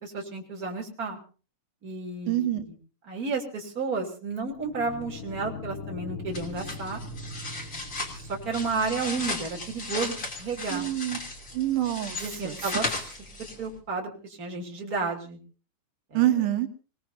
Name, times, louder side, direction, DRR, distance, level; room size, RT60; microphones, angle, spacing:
voice 1, 0.0-1.2 1.8-2.5 3.1-7.0 8.2-10.9 12.2-12.9 13.4-15.4 16.1-16.3, right 4 dB, 30° right, 1 dB, 3.3 m, -32 dB
voice 2, 2.3-2.7 10.7-11.2 11.5-12.7 16.1-16.7, right 13 dB, 90° right, 8 dB, 2.7 m, -26 dB
sound 1, 4.4-11.7, left 2 dB, 90° left, 2.8 m, -42 dB
sound 2, 6.3-13.8, left 2 dB, 25° left, 3.2 m, -36 dB
26.5 x 18.5 x 2.7 m, 0.37 s
omnidirectional pair, 3.6 m